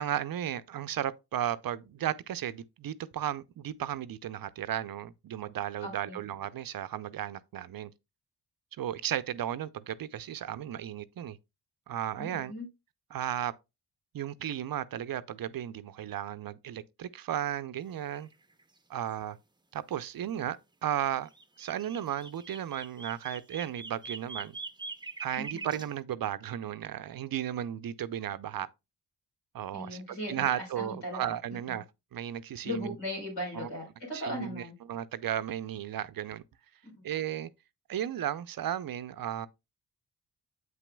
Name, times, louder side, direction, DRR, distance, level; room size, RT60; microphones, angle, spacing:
voice 1, 0.0-7.9 8.8-11.4 11.9-12.5 13.1-13.5 14.1-18.3 18.9-19.4 19.7-21.3 21.6-24.6 25.2-28.7 29.5-31.8 32.1-33.0 33.5-33.7 34.1-36.4 37.0-37.5 37.9-39.5, right 10 dB, 55° right, 0.5 m, -34 dB
voice 2, 5.8-6.2 12.2-12.7 25.4-25.6 29.7-31.3 32.6-34.7, left 1 dB, 85° left, 4.1 m, -38 dB
sound 1, 18.1-18.3 18.6-18.7 21.3-25.9, right 4 dB, 10° right, 0.7 m, -43 dB
7.6 x 6.0 x 2.2 m
supercardioid pair, 45°, 43 cm